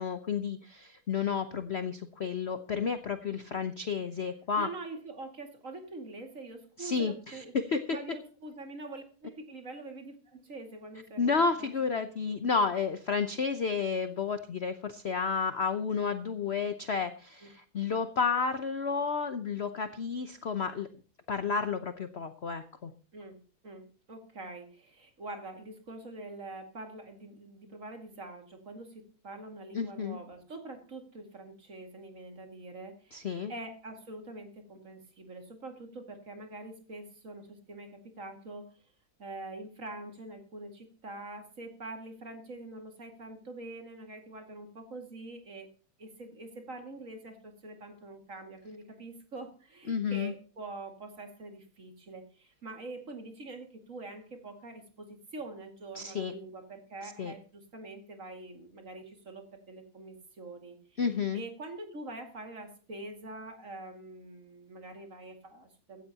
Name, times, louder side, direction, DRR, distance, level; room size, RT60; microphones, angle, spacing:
voice 1, 0.0-4.7 6.8-8.0 11.2-20.9 21.3-22.9 29.7-30.2 33.1-33.5 49.9-50.3 55.9-56.3 57.0-57.3 61.0-61.4, left 5 dB, 55° left, 9 dB, 0.7 m, -31 dB
voice 2, 4.6-7.5 7.9-11.7 12.2-12.3 17.4-17.5 23.1-23.4 23.6-38.7 39.2-45.7 46.0-61.0 61.3-66.0, right 2 dB, 40° right, 4 dB, 2.5 m, -45 dB
16.0 x 14.5 x 2.9 m, 0.39 s
omnidirectional pair, 2.2 m